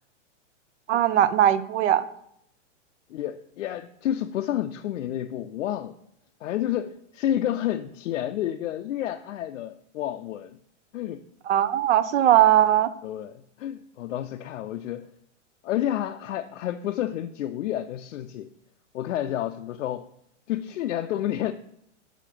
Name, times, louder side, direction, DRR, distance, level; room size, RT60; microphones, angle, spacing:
voice 1, 0.9-2.1 11.5-12.9, right 11 dB, 65° right, 0.6 m, -19 dB
voice 2, 3.1-6.0 6.4-10.6 10.9-11.3 13.0-15.1 15.6-18.5 18.9-20.1 20.5-21.5, left 12 dB, 85° left, 0.5 m, -30 dB
6.4 x 5.1 x 5.8 m
supercardioid pair, 165°, 37 cm